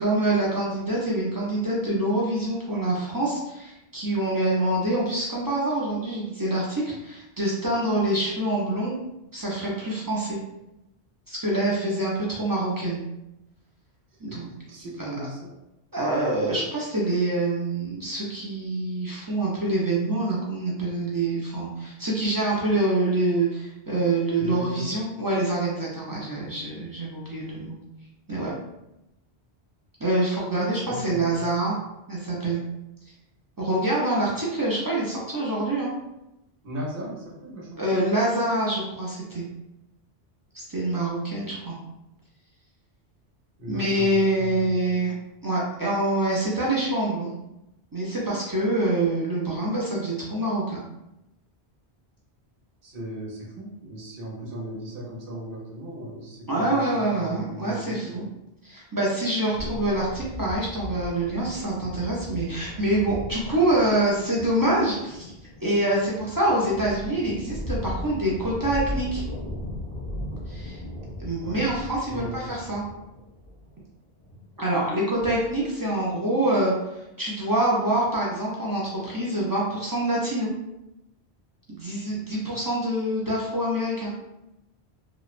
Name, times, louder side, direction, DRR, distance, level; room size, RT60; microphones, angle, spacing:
voice 1, 0.0-9.0 9.3-10.4 11.3-13.0 14.2-14.5 15.9-27.7 28.3-28.5 30.0-31.8 32.1-32.6 33.6-35.9 37.8-39.4 40.5-41.8 43.7-45.1 45.4-47.3 47.9-50.8 56.5-58.3 58.6-65.3 65.6-69.2 70.5-70.8 71.2-72.8 74.6-80.5 81.7-84.1, right 1 dB, 35° right, -5 dB, 0.3 m, -26 dB
voice 2, 14.2-15.5 24.4-25.0 30.5-31.4 36.6-38.0 43.6-45.0 52.8-58.2 71.4-71.7 72.1-72.5, equal, 60° right, -4 dB, 0.9 m, -37 dB
sound 1, 59.6-75.7, left 1 dB, 10° left, 0.6 m, -37 dB
2.9 x 2.0 x 2.4 m, 0.90 s
omnidirectional pair, 1.1 m